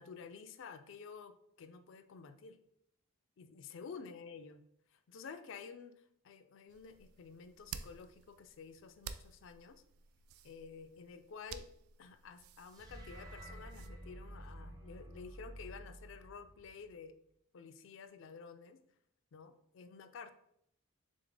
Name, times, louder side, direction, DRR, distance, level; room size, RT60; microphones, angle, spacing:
voice 1, 0.0-2.6 3.4-4.6 4.9-9.8 10.4-11.7 12.0-17.1 17.5-18.8 19.3-20.3, left 5 dB, 60° left, 10 dB, 0.3 m, -51 dB
sound 1, 6.7-13.9, right 7 dB, 80° right, 0.3 m, -52 dB
sound 2, 12.7-17.0, right 1 dB, 20° right, 0.5 m, -51 dB
3.5 x 3.4 x 3.9 m, 0.76 s
head